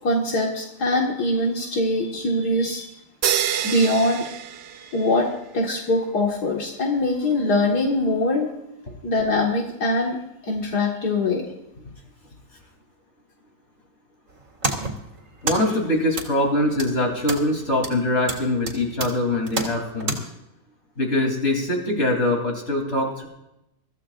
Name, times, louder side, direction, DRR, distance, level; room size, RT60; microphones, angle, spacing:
voice 1, 0.0-2.9 3.6-4.3 4.9-8.5 9.0-11.4, left 2 dB, 80° left, -1 dB, 2.3 m, -23 dB
sound 1, 3.2-5.4, right 9 dB, 75° right, 0.5 m, -27 dB
sound 2, 14.3-20.2, right 2 dB, 50° right, 2.7 m, -32 dB
voice 2, 15.4-20.2 21.0-23.3, left 1 dB, 45° left, 1 dB, 3.7 m, -23 dB
23.0 x 15.0 x 2.5 m, 0.86 s
omnidirectional pair, 1.7 m